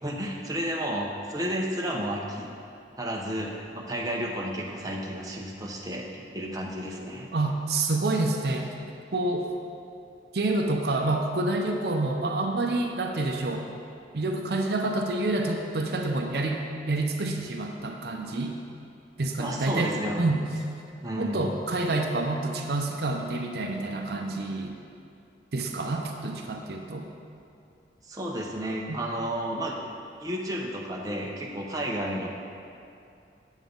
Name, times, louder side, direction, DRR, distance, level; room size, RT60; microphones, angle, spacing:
voice 1, 0.0-2.5 3.0-7.3 19.4-20.2 21.0-21.4 28.0-29.8 30.2-32.3, equal, 20° right, -2 dB, 0.7 m, -32 dB
voice 2, 7.3-8.7 9.1-9.5 10.3-13.7 14.1-18.6 19.2-20.4 21.1-24.8 25.5-27.1 28.9-29.0, right 2 dB, 60° right, 2 dB, 0.6 m, -28 dB
8.0 x 7.3 x 3.8 m, 2.5 s
head